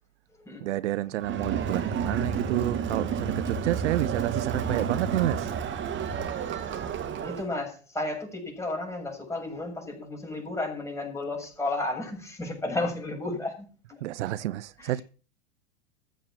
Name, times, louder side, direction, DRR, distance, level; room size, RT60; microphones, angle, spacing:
voice 1, 0.6-5.5 14.0-15.0, right 15 dB, 70° right, 0.7 m, -29 dB
Crowd, 1.2-7.5, right 7 dB, 30° right, 1.9 m, -30 dB
voice 2, 7.2-13.6 13.9-14.0 14.8-14.9, left 2 dB, 10° left, 6.7 m, -33 dB
14.5 x 8.3 x 6.2 m
hypercardioid pair, 100°, 36 cm